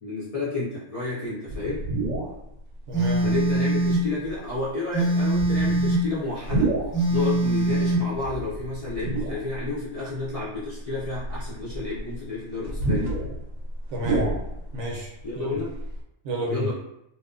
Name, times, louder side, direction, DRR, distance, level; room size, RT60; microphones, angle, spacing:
voice 1, 0.0-1.9 3.2-6.8 7.1-13.2 15.2-15.8 16.5-16.7, left 3 dB, 40° left, -10 dB, 0.5 m, -31 dB
sound 1, 1.5-2.4 3.1-3.2 4.2-4.6 5.3-7.1 8.2-9.7 10.3-10.4 11.0-14.9 15.2-15.3 15.5-16.0, right 2 dB, 90° right, 1.0 m, -29 dB
Telephone, 2.9-4.1 4.9-6.1 6.9-8.1, right 1 dB, 10° left, 0.8 m, -22 dB
voice 2, 2.9-3.3 13.9-14.3 14.7-15.5 16.2-16.7, equal, 70° right, -1 dB, 0.8 m, -31 dB
2.8 x 2.1 x 2.4 m, 0.81 s
omnidirectional pair, 1.4 m